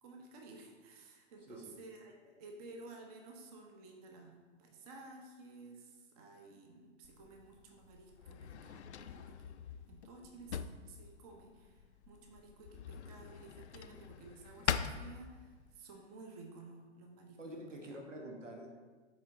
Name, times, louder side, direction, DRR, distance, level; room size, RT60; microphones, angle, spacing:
voice 1, 0.0-18.0, right 3 dB, 30° right, 2 dB, 0.9 m, -54 dB
voice 2, 1.5-1.8 17.4-18.7, right 1 dB, 80° right, 1 dB, 1.3 m, -47 dB
Drawer open or close, 7.0-15.8, left 8 dB, 65° left, 0.5 m, -43 dB
7.4 x 4.5 x 4.0 m, 1.4 s
figure-of-eight pair, 115°, 37 cm